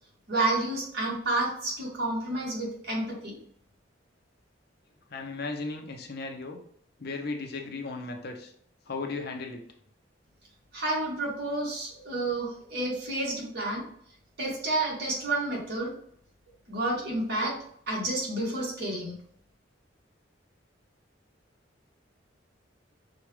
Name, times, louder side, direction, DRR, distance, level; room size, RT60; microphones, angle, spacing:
voice 1, 0.3-3.4 10.7-13.8 14.4-15.9 16.7-17.6 17.9-19.1, right 2 dB, 60° right, -3 dB, 1.7 m, -30 dB
voice 2, 5.1-6.6 7.0-8.5 8.9-9.6, left 3 dB, 60° left, 3 dB, 0.7 m, -36 dB
6.0 x 2.4 x 3.2 m, 0.66 s
head